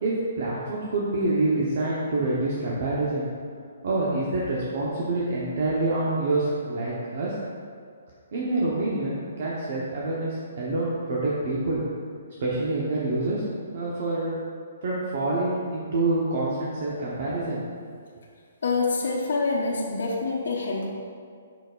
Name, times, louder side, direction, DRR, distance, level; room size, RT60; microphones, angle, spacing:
voice 1, 0.0-3.3 3.8-7.3 8.3-11.8 12.4-13.4 13.7-14.4 14.8-17.6, right 2 dB, 50° right, -6 dB, 1.0 m, -26 dB
voice 2, 18.6-20.9, left 3 dB, 70° left, -4 dB, 1.1 m, -26 dB
6.7 x 6.2 x 2.5 m, 2.2 s
hypercardioid pair, 165°, 0 cm